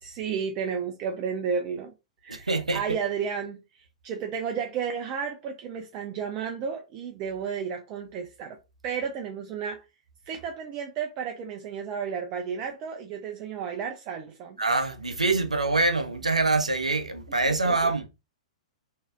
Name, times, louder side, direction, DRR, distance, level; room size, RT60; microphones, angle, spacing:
voice 1, 0.0-1.9 2.2-8.6 8.8-9.9 10.3-14.6 17.4-17.9, right 6 dB, 30° right, 0.5 m, -32 dB
voice 2, 2.3-2.8 14.6-18.1, right 3 dB, 80° right, 0.6 m, -25 dB
3.9 x 2.7 x 2.4 m
figure-of-eight pair, 110°, 4 cm